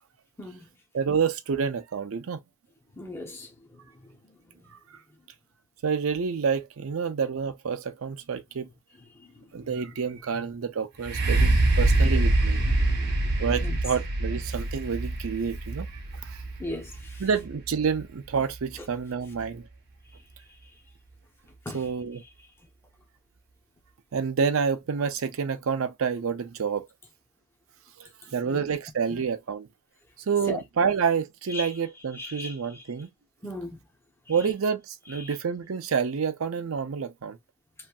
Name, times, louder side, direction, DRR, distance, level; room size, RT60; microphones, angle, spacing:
voice 1, 0.9-2.4 4.9-5.0 5.8-8.7 9.5-12.6 13.4-15.9 16.2-16.4 17.2-19.7 21.7-22.2 24.1-26.9 28.0-29.7 30.2-33.1 34.3-37.4, right 6 dB, 90° right, 0.5 m, -28 dB
voice 2, 3.0-3.5 4.6-4.7 11.3-11.5 11.9-12.2 12.6-13.8 16.6-17.2 21.7-21.8 28.4-28.6 29.1-29.2 30.5-30.6 31.5-31.7 32.2-32.6 33.4-33.8 35.2-35.3, left 2 dB, 10° left, 0.7 m, -38 dB
sound 1, 11.0-18.8 19.4-19.5, right 2 dB, 50° right, 0.8 m, -25 dB
3.1 x 2.6 x 2.3 m
head